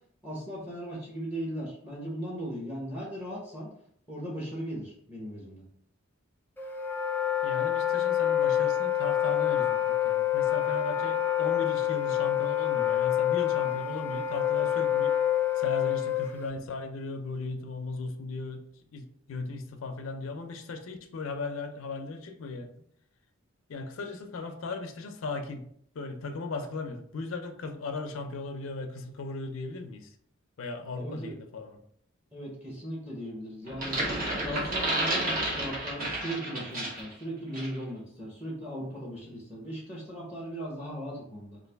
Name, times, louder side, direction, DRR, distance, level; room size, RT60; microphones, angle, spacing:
voice 1, 0.2-3.7 4.1-5.7 30.9-31.4 32.3-34.0 34.4-41.6, equal, 10° right, -4 dB, 0.8 m, -38 dB
Wind instrument woodwind instrument, 6.6-16.5, left 11 dB, 10° left, 0.3 m, -27 dB
voice 2, 7.4-15.2 15.6-18.6 18.9-22.7 23.7-25.7 25.9-30.1 30.6-31.8, left 3 dB, 80° left, 6 dB, 0.4 m, -37 dB
sound 1, 33.7-37.1 37.5-37.8, right 1 dB, 45° right, 1.0 m, -31 dB
3.1 x 2.5 x 3.4 m, 0.66 s
head